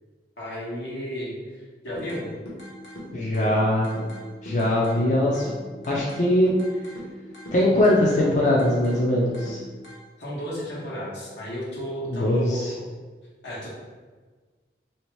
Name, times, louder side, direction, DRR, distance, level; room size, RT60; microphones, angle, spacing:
voice 1, 0.4-1.3 1.8-2.3 10.2-12.8 13.4-13.7, equal, 85° left, -6 dB, 1.2 m, -33 dB
sound 1, 2.0-10.0, equal, 65° left, 0.9 m, -41 dB
voice 2, 3.1-3.9 4.4-5.5 5.9-6.5 7.5-9.6 12.1-12.7, left 1 dB, 45° left, -4 dB, 0.4 m, -21 dB
3.4 x 2.8 x 3.1 m, 1.4 s
head